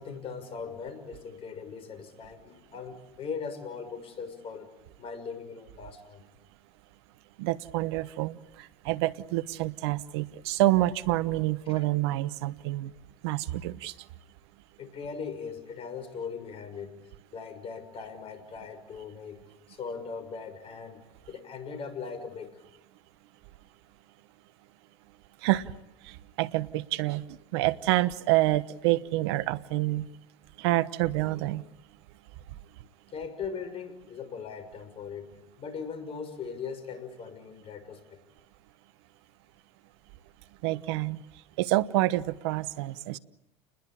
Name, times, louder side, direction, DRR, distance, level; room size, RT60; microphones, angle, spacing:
voice 1, 0.0-4.7 5.0-6.2 11.7-11.8 14.8-17.0 17.3-19.4 19.7-22.6 33.1-38.2, left 5 dB, 45° left, 10 dB, 6.2 m, -39 dB
voice 2, 7.4-12.9 13.2-13.9 25.4-25.7 26.0-30.1 30.6-31.7 40.6-41.2 41.6-43.2, right 17 dB, 75° right, 16 dB, 1.1 m, -28 dB
29.5 x 21.0 x 8.7 m, 0.89 s
hypercardioid pair, 80°, 14 cm